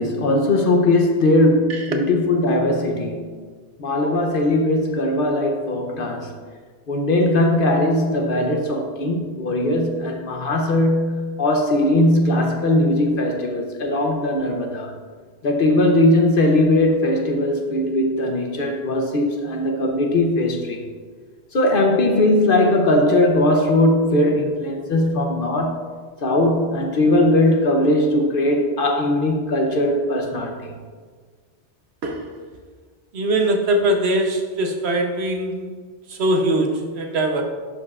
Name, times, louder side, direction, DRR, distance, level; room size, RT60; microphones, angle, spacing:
voice 1, 0.0-3.3 3.8-6.3 6.9-14.9 15.4-20.8 21.5-25.9 26.2-30.7, left 1 dB, 55° left, 3 dB, 0.9 m, -19 dB
voice 2, 32.0-32.3 33.1-35.7 36.1-37.4, right 1 dB, 65° right, 3 dB, 1.0 m, -22 dB
11.0 x 5.3 x 2.4 m, 1.6 s
omnidirectional pair, 1.2 m